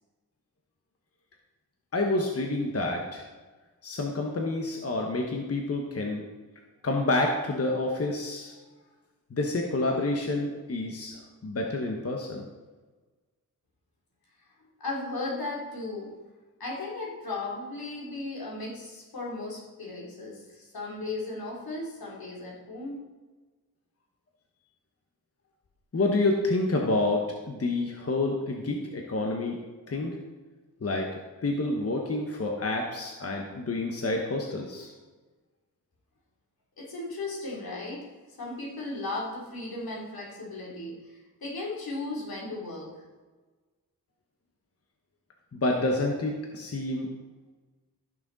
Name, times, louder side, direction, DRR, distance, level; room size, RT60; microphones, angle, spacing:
voice 1, 1.9-3.2 3.8-6.2 6.8-8.5 9.3-12.5 25.9-29.6 29.9-30.2 30.8-34.9 45.5-47.1, left 2 dB, 40° left, 1 dB, 1.2 m, -28 dB
voice 2, 14.8-16.1 16.6-23.0 36.8-38.1 38.4-42.9, left 2 dB, 80° left, -4 dB, 3.2 m, -36 dB
15.0 x 6.2 x 4.0 m, 1.3 s
wide cardioid pair, 115°, 36 cm